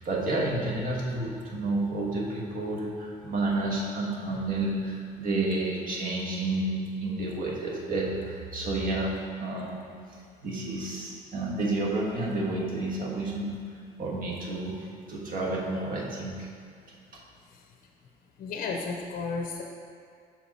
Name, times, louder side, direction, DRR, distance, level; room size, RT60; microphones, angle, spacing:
voice 1, 0.0-9.8 10.1-13.5 14.0-16.3 17.1-17.2, right 2 dB, 55° right, -4 dB, 1.4 m, -30 dB
voice 2, 18.4-19.6, left 4 dB, 60° left, 2 dB, 0.6 m, -33 dB
6.0 x 4.5 x 4.1 m, 2.4 s
cardioid pair, 110°, 17 cm